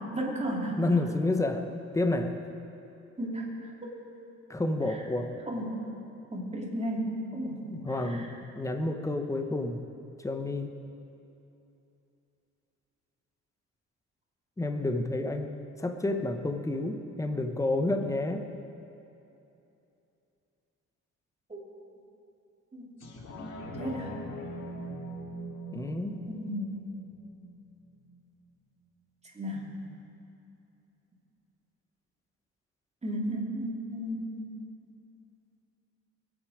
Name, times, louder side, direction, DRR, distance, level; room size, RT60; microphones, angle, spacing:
voice 1, 0.1-0.8 3.2-3.9 5.5-5.8 6.3-8.3 21.5-21.6 22.7-22.9 23.8-24.1 26.3-26.9 29.3-29.7 33.0-34.5, equal, 20° right, -2 dB, 2.9 m, -34 dB
voice 2, 0.7-1.7 1.9-2.4 4.5-5.3 7.7-9.8 10.2-10.7 14.6-15.5 15.8-18.5 25.7-26.3, left 2 dB, 10° left, 6 dB, 1.0 m, -30 dB
sound 1, 23.0-28.0 28.5-28.6, equal, 60° left, 2.3 m, -41 dB
21.5 x 8.8 x 5.0 m, 2.8 s
cardioid pair, 90°, 30 cm